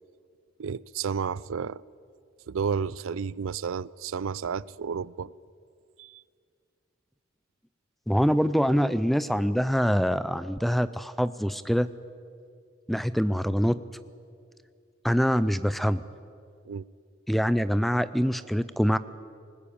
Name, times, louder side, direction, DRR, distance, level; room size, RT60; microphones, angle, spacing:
voice 1, 0.6-1.8 2.5-5.3 6.0-6.2 16.7-16.8, right 6 dB, 90° right, 0.4 m, -31 dB
voice 2, 8.1-11.9 12.9-13.8 15.0-16.0 17.3-19.0, equal, ahead, 0.4 m, -24 dB
20.0 x 19.0 x 8.7 m
head